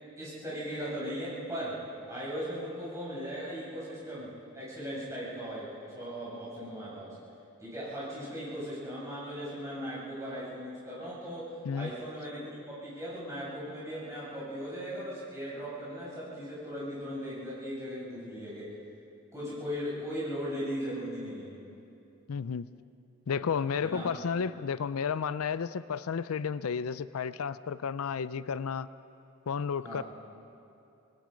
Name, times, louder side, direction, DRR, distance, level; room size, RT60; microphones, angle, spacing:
voice 1, 0.2-1.8 2.1-7.2 7.6-18.7 19.3-21.6 23.8-24.1 29.8-30.0, equal, 15° right, -8 dB, 6.8 m, -38 dB
voice 2, 22.3-22.7 23.3-28.9 29.5-30.0, left 6 dB, 85° left, 15 dB, 0.5 m, -32 dB
26.0 x 19.5 x 5.2 m, 2.7 s
head